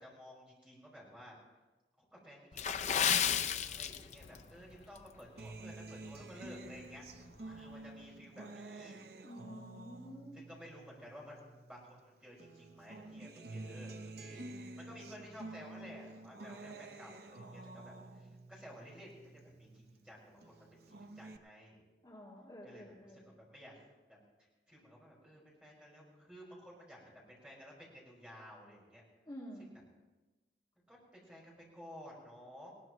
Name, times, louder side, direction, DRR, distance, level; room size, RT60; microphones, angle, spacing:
voice 1, 0.0-1.4 2.1-9.0 10.3-21.8 22.6-23.8 24.1-24.2 24.7-29.0 30.9-32.7, equal, 5° right, -5 dB, 5.3 m, -54 dB
Water / Splash splatter, 2.5-4.4 4.7-5.0 5.5-5.7 6.2-6.3, left 8 dB, 40° left, 0.5 m, -32 dB
Acoustic guitar, 5.4-12.0 12.4-20.0 20.4-21.4, right 2 dB, 65° right, 0.8 m, -50 dB
voice 2, 9.2-10.4 22.0-23.3 29.3-29.7, equal, 25° left, -5 dB, 2.1 m, -50 dB
20.5 x 18.0 x 3.1 m, 1.2 s
head